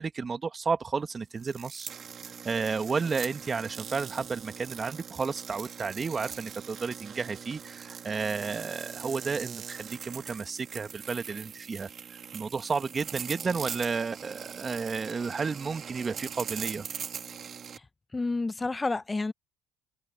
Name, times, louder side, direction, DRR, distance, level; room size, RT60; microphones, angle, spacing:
voice 1, 0.0-1.9 2.4-11.9 12.3-16.9, right 5 dB, 30° right, 1.7 m, -32 dB
sound 1, 1.4-17.8, right 7 dB, 50° right, 2.5 m, -41 dB
voice 2, 18.1-19.3, left 3 dB, 20° left, 1.0 m, -29 dB
supercardioid pair, 75°, 0 cm